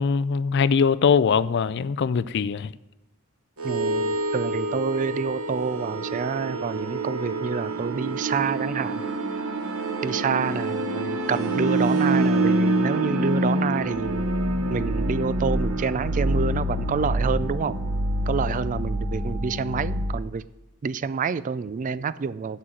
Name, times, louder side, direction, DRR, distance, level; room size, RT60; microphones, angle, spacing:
voice 1, 0.0-2.7, left 6 dB, 50° left, 0.4 m, -22 dB
voice 2, 3.6-9.0 10.0-14.3 14.7-17.8 18.3-20.4 20.8-22.6, right 5 dB, 35° right, 0.3 m, -28 dB
sound 1, 3.6-20.2, right 1 dB, 70° right, 1.1 m, -26 dB
7.4 x 6.3 x 7.7 m
head